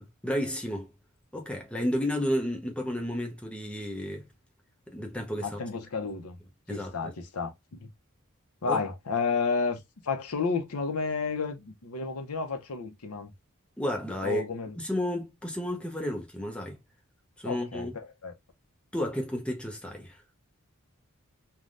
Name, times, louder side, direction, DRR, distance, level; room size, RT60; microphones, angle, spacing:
voice 1, 0.2-0.9 1.3-4.3 4.9-5.6 6.7-7.1 8.6-8.8 13.8-14.4 14.8-16.8 17.4-17.9 18.9-20.2, equal, 5° left, 0.6 m, -32 dB
voice 2, 5.4-6.4 6.7-7.9 8.6-13.3 14.2-14.8 17.4-17.9 18.2-18.3, left 4 dB, 90° left, 0.7 m, -31 dB
3.2 x 2.2 x 2.5 m
head